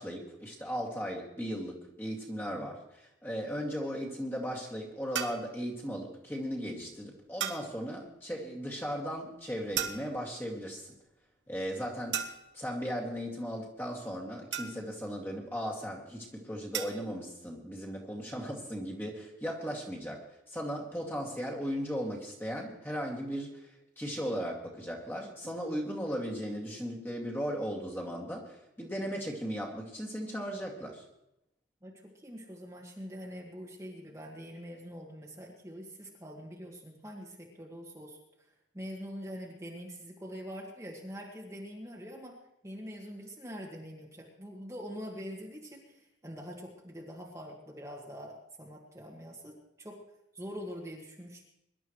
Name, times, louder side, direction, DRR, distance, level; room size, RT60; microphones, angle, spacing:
voice 1, 0.0-10.9 11.5-12.2 12.5-23.7 24.0-31.0, equal, 10° left, -2 dB, 2.2 m, -37 dB
sound 1, 5.2-5.5 7.4-7.8 9.8-10.3 12.1-12.6 14.5-15.1 16.7-17.1, right 9 dB, 75° right, 1.1 m, -36 dB
voice 2, 31.8-38.2 38.7-42.4 42.6-50.0 50.3-51.4, equal, 15° right, -2 dB, 1.7 m, -44 dB
23.5 x 11.5 x 3.1 m, 0.84 s
head